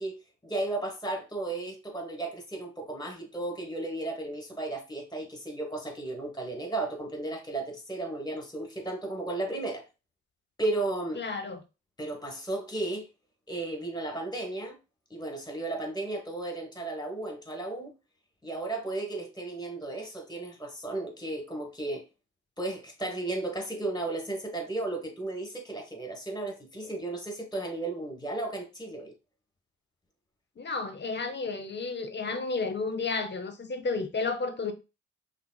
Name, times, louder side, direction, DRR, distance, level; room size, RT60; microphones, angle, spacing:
voice 1, 0.0-9.8 10.6-11.2 12.0-13.1 13.5-14.8 15.1-17.9 18.4-22.0 22.6-29.1, right 2 dB, 10° left, 1.3 m, -34 dB
voice 2, 11.2-11.6 30.6-34.7, left 4 dB, 35° left, 0.7 m, -32 dB
5.4 x 2.0 x 2.3 m
hypercardioid pair, 40°, 34 cm